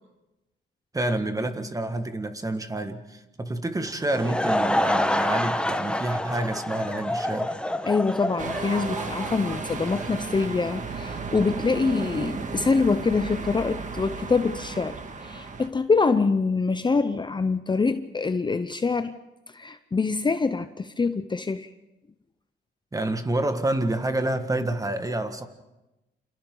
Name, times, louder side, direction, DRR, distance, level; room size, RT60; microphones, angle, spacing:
voice 1, 0.9-7.6 22.9-25.5, right 1 dB, 15° right, 8 dB, 1.9 m, -28 dB
Laughter / Crowd, 3.9-10.2, left 1 dB, 5° left, 1.2 m, -27 dB
voice 2, 7.9-19.1 19.5-21.7, left 4 dB, 25° left, 10 dB, 0.7 m, -25 dB
sound 1, 8.4-15.7, right 4 dB, 40° right, 1.9 m, -34 dB
29.0 x 27.5 x 4.0 m, 1.0 s
cardioid pair, 90°, 20 cm